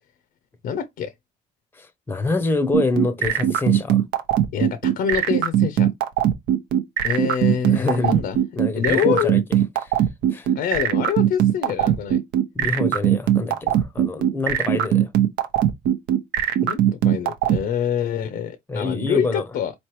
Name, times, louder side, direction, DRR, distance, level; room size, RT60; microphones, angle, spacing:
voice 1, 0.6-1.1 4.5-5.9 7.0-8.4 8.8-9.4 10.6-12.2 16.6-19.7, left 8 dB, 65° left, 0.6 m, -26 dB
voice 2, 1.8-4.0 7.7-8.2 8.6-9.4 9.8-9.9 10.3-10.5 12.5-15.1 18.7-19.4, left 3 dB, 15° left, 0.6 m, -26 dB
sound 1, 2.7-17.6, right 11 dB, 80° right, 0.7 m, -19 dB
4.3 x 3.1 x 3.0 m
cardioid pair, 110°, 17 cm